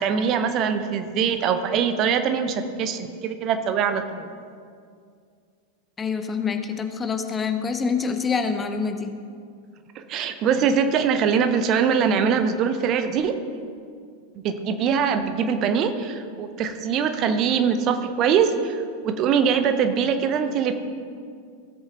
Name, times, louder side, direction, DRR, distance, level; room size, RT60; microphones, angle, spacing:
voice 1, 0.0-4.3 10.0-13.4 14.4-20.8, right 6 dB, 35° right, 8 dB, 0.7 m, -23 dB
voice 2, 6.0-9.2, left 5 dB, 15° left, 7 dB, 0.7 m, -26 dB
16.5 x 7.9 x 2.9 m, 2.2 s
figure-of-eight pair, 90°, 0 cm